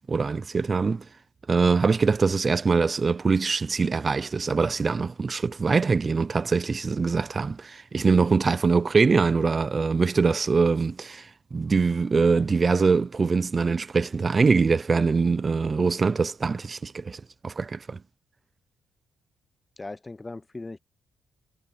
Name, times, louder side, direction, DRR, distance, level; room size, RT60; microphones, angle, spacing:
voice 1, 0.1-1.0 1.5-18.0, right 4 dB, 35° right, 0.5 m, -23 dB
voice 2, 19.8-20.8, left 2 dB, 20° left, 0.4 m, -38 dB
cardioid pair, 95°, 0 cm